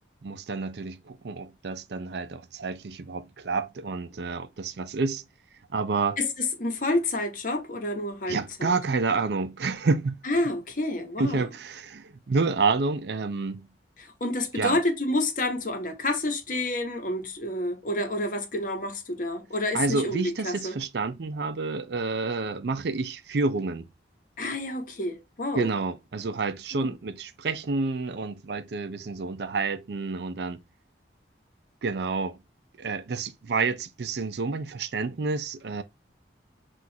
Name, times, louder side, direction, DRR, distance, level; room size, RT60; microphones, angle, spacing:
voice 1, 0.2-5.2 5.7-6.2 8.3-10.2 11.2-13.7 14.5-14.8 19.7-23.9 25.5-30.6 31.8-32.4 32.8-35.8, right 4 dB, 65° right, 0.5 m, -29 dB
voice 2, 6.2-8.8 10.2-11.5 14.0-20.8 24.4-25.7 26.7-26.9, left 2 dB, 45° left, 1.0 m, -29 dB
6.0 x 2.4 x 2.7 m
head